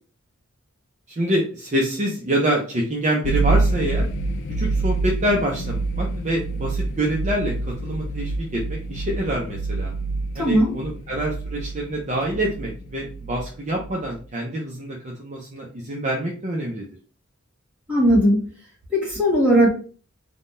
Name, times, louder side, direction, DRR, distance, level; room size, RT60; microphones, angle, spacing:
voice 1, 1.1-4.1 4.6-9.9 10.4-16.9, right 1 dB, 35° right, -2 dB, 0.5 m, -26 dB
sound 1, 3.2-14.2, right 3 dB, 55° left, 0.3 m, -27 dB
voice 2, 10.3-10.8 17.9-18.5 18.9-19.7, equal, 5° right, -6 dB, 1.5 m, -18 dB
3.5 x 2.2 x 2.5 m, 0.39 s
head